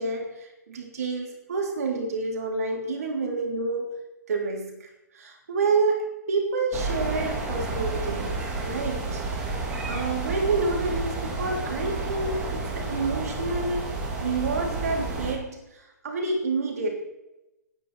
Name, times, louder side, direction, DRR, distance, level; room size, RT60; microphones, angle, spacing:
voice 1, 0.0-4.0 4.3-4.9 5.1-9.2 9.9-13.9 14.2-16.9, right 3 dB, 60° right, 1 dB, 3.2 m, -28 dB
sound 1, 6.7-15.3, right 3 dB, 10° right, 1.7 m, -30 dB
17.5 x 9.3 x 4.2 m, 0.95 s
hypercardioid pair, 175°, 9 cm